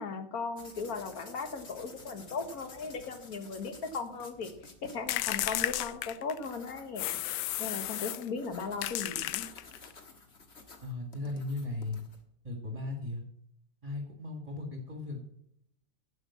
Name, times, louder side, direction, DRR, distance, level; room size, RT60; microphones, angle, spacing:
voice 1, 0.0-4.5 4.8-7.1 7.6-9.5, left 4 dB, 55° left, 8 dB, 1.8 m, -37 dB
sound 1, 0.6-12.2, left 3 dB, 40° left, 1.8 m, -53 dB
sound 2, 5.1-6.5 7.0-8.3 8.8-9.9, left 14 dB, 75° left, 1.2 m, -33 dB
voice 2, 10.8-12.0 12.4-13.2 13.8-15.2, left 2 dB, 20° right, 2 dB, 1.8 m, -37 dB
11.0 x 7.4 x 7.2 m, 0.76 s
omnidirectional pair, 1.9 m